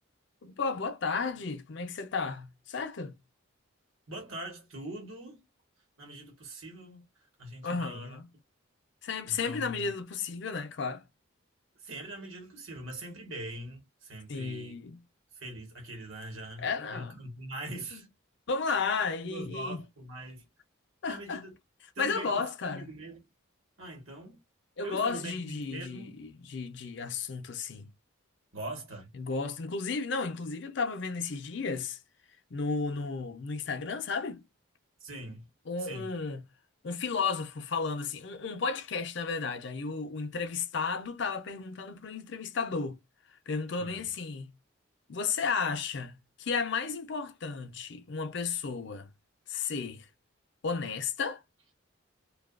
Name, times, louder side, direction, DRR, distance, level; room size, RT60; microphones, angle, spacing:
voice 1, 0.4-3.2 7.6-8.3 9.0-11.0 14.3-15.0 16.6-17.1 17.9-18.0 18.5-19.8 21.0-21.4 22.0-22.9 24.8-27.9 29.1-32.0 32.5-34.4 35.7-36.4 36.8-43.0 43.5-44.5 45.1-49.1 49.5-50.1 50.6-51.4, left 5 dB, 55° left, 0.5 m, -33 dB
voice 2, 4.1-5.4 6.0-7.1 7.4-8.2 9.2-9.9 11.8-14.8 15.3-18.1 18.7-18.8 19.2-20.5 21.1-21.5 21.9-23.3 23.8-24.4 24.8-26.2 28.5-29.1 35.0-35.5 35.8-36.1 43.8-44.1, right 1 dB, 75° right, 1.1 m, -42 dB
2.8 x 2.3 x 2.3 m
head